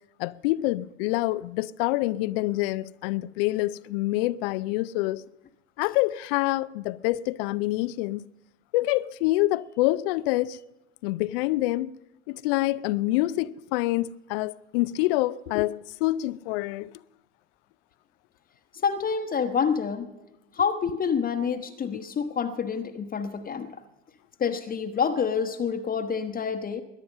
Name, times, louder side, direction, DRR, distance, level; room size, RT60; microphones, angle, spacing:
voice 1, 0.2-5.2 5.8-8.3 8.7-10.6 11.0-11.9 12.3-16.9, left 18 dB, 50° left, 0.5 m, -26 dB
voice 2, 18.8-20.1 20.5-23.8 24.4-26.8, left 6 dB, 25° left, 1.1 m, -27 dB
21.0 x 10.5 x 6.6 m
figure-of-eight pair, 80°, 37 cm